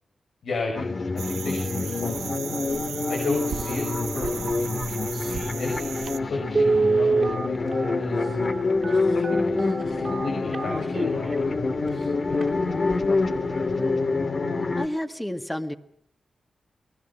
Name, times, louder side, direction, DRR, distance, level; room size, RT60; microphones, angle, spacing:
voice 1, 0.4-2.4 3.1-6.0 6.3-8.3 8.9-11.4 11.8-12.4 12.7-14.2, left 3 dB, 85° left, 1 dB, 5.8 m, -35 dB
sound 1, 0.8-14.9, left 3 dB, 55° left, 2.3 m, -26 dB
sound 2, 1.2-6.2, right 7 dB, 90° right, 1.0 m, -36 dB
Telephone, 5.7-5.8 6.5-11.3 11.9-12.0 12.3-12.5 12.9-13.2 13.5-13.6, right 3 dB, 40° right, 2.4 m, -25 dB
voice 2, 14.8-15.7, left 1 dB, 10° left, 6 dB, 2.0 m, -30 dB
29.0 x 19.0 x 5.7 m, 0.73 s
cardioid pair, 60°, 0 cm